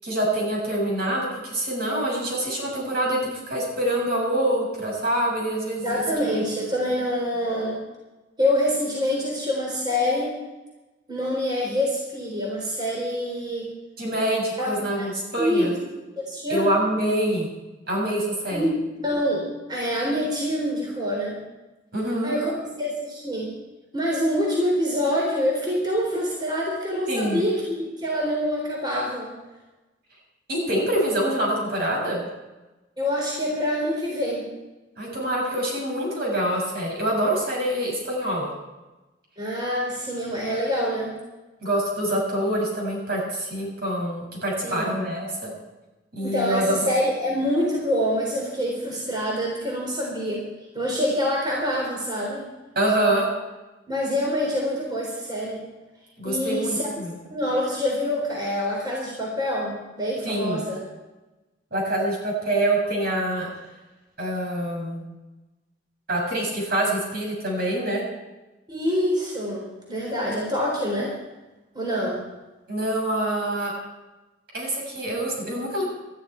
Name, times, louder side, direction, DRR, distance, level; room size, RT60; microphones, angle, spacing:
voice 1, 0.0-6.4 14.0-15.8 16.5-17.5 17.9-18.7 21.9-22.3 27.1-27.4 30.5-32.2 35.0-38.5 41.6-45.5 46.1-46.9 52.7-53.3 56.2-57.2 60.2-60.6 61.7-63.5 64.2-65.0 66.1-68.0 72.7-73.7 74.5-75.9, right 1 dB, 60° right, -1 dB, 6.6 m, -25 dB
voice 2, 5.8-7.8 8.4-10.3 11.1-13.7 14.6-14.7 15.0-15.1 15.4-15.7 16.2-16.7 18.5-21.4 22.2-22.5 22.8-23.5 23.9-29.3 33.0-34.5 39.4-41.1 44.6-44.9 46.2-50.4 50.7-52.4 53.9-55.6 56.2-56.8 57.3-60.8 68.7-71.1 71.7-72.2, equal, 25° right, -2 dB, 3.8 m, -26 dB
19.5 x 13.0 x 4.5 m, 1.1 s
head